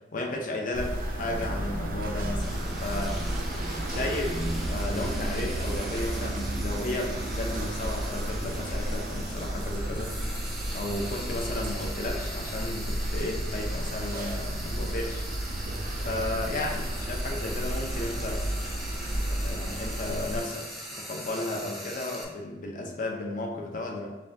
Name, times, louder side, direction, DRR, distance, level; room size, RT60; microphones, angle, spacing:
voice 1, 0.1-3.2 3.9-10.2 10.7-15.2 16.0-18.4 19.3-24.1, left 2 dB, 50° left, 1 dB, 0.6 m, -34 dB
sound 1, 0.7-20.4, right 1 dB, 50° right, 0.4 m, -32 dB
Bowed string instrument, 0.8-5.8, equal, 70° left, 1.3 m, -41 dB
Frying (food), 2.4-22.2, right 1 dB, ahead, 0.5 m, -41 dB
5.4 x 2.3 x 2.6 m, 1.1 s
head